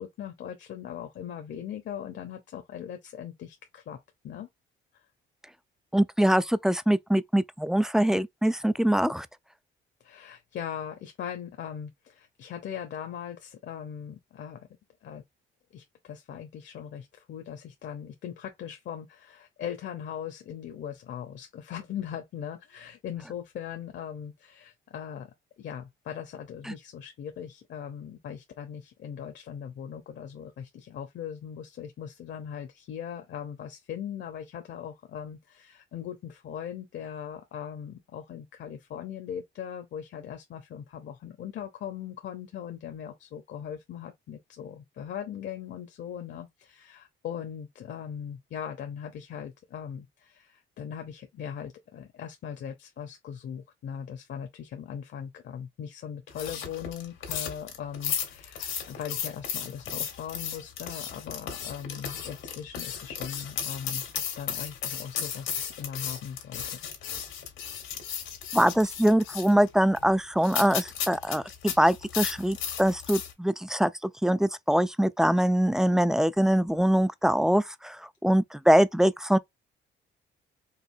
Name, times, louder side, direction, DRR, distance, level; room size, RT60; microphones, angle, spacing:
voice 1, 0.0-4.0 4.2-4.5 10.0-14.7 15.0-15.2 15.7-25.3 25.6-64.0 64.4-66.8, left 8 dB, 65° left, 0.9 m, -39 dB
voice 2, 5.9-9.3 68.5-73.9 74.2-78.0 78.2-79.4, equal, 5° right, 0.3 m, -23 dB
sound 1, 56.3-73.3, left 8 dB, 90° left, 1.7 m, -35 dB
4.9 x 2.6 x 2.7 m
cardioid pair, 90°, 20 cm